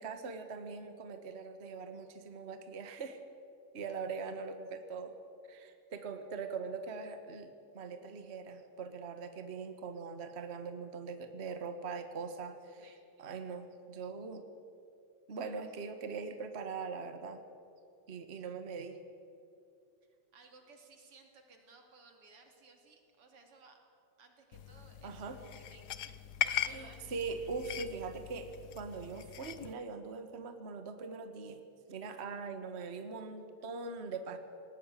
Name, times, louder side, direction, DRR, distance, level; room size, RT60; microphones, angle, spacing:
voice 1, 0.0-3.2 3.7-5.2 5.5-12.8 13.2-14.5 15.3-17.4 18.1-19.0 25.0-25.4 26.7-34.4, right 4 dB, 35° right, 7 dB, 1.4 m, -42 dB
voice 2, 20.0-23.8 24.2-27.0, right 3 dB, 85° right, 3 dB, 3.6 m, -60 dB
sound 1, 24.5-29.7, left 10 dB, 65° left, 1.1 m, -40 dB
19.0 x 18.5 x 9.1 m, 2.5 s
omnidirectional pair, 2.4 m